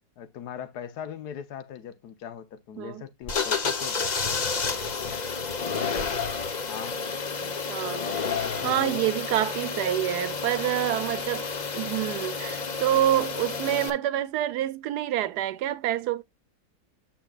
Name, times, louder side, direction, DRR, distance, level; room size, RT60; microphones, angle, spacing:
voice 1, 0.2-4.1 6.6-7.0 8.4-9.1, left 8 dB, 75° left, 1.4 m, -40 dB
sound 1, 3.2-13.9, left 5 dB, 40° left, 0.6 m, -30 dB
voice 2, 7.4-8.3 8.6-16.2, right 12 dB, 80° right, 1.2 m, -27 dB
8.5 x 6.1 x 2.3 m
omnidirectional pair, 1.7 m